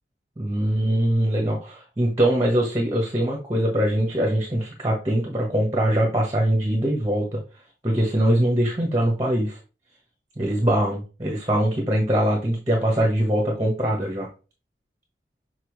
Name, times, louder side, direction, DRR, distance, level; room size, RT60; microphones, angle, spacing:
voice 1, 0.4-7.4 7.8-9.6 10.4-14.3, right 1 dB, 20° right, 0 dB, 1.3 m, -22 dB
6.8 x 4.4 x 3.2 m, 0.34 s
head